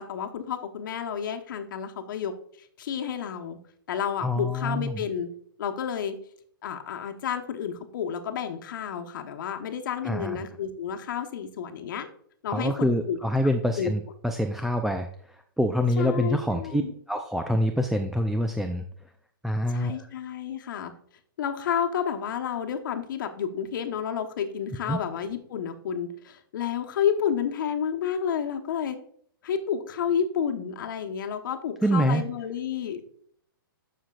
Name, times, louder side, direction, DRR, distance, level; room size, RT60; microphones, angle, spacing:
voice 1, 0.0-3.6 3.9-5.3 5.6-6.2 6.6-12.1 12.4-13.2 13.8-13.9 16.0-16.9 19.7-20.9 21.4-29.0 29.4-33.0, left 8 dB, 60° left, 5 dB, 1.1 m, -30 dB
voice 2, 4.2-5.1 10.0-10.4 12.5-16.8 17.1-18.8 19.4-20.1 24.9-25.0 31.8-32.2, equal, ahead, 5 dB, 0.4 m, -26 dB
11.0 x 6.4 x 2.4 m, 0.62 s
hypercardioid pair, 135°, 12 cm